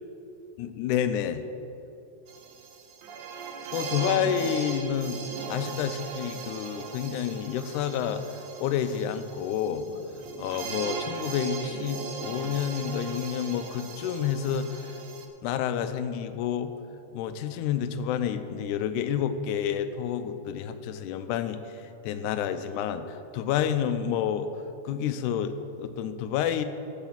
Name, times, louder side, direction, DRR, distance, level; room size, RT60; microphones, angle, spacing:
voice 1, 0.6-1.4 3.7-5.2 5.5-9.9 10.4-15.0 15.4-16.7 17.1-24.5 24.8-26.6, left 9 dB, 85° left, 10 dB, 2.0 m, -29 dB
sound 1, 2.3-15.3, right 5 dB, 85° right, 2.3 m, -38 dB
13.0 x 4.9 x 7.3 m, 2.7 s
omnidirectional pair, 3.5 m